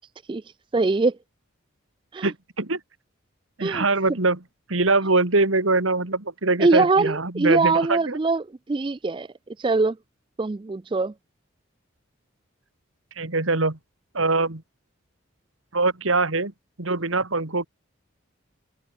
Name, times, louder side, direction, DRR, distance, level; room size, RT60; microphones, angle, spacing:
voice 1, 0.7-1.1 2.1-2.3 3.6-3.8 6.6-9.3 9.6-10.0 10.4-11.1, right 3 dB, 25° right, 0.3 m, -22 dB
voice 2, 2.2-2.8 3.6-4.4 4.7-8.2 13.2-13.8 14.1-14.6 15.7-16.5 16.8-17.7, right 3 dB, 75° right, 2.3 m, -23 dB
head